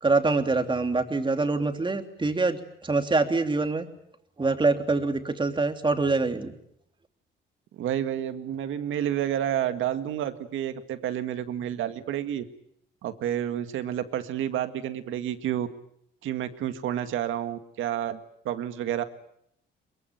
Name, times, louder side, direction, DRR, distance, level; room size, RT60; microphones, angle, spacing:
voice 1, 0.0-3.9 4.4-6.5, right 3 dB, 25° right, 6 dB, 3.0 m, -25 dB
voice 2, 7.7-12.4 13.0-15.7 16.2-19.0, right 11 dB, 80° right, 10 dB, 2.0 m, -30 dB
23.0 x 22.5 x 9.3 m, 0.75 s
cardioid pair, 90°, 20 cm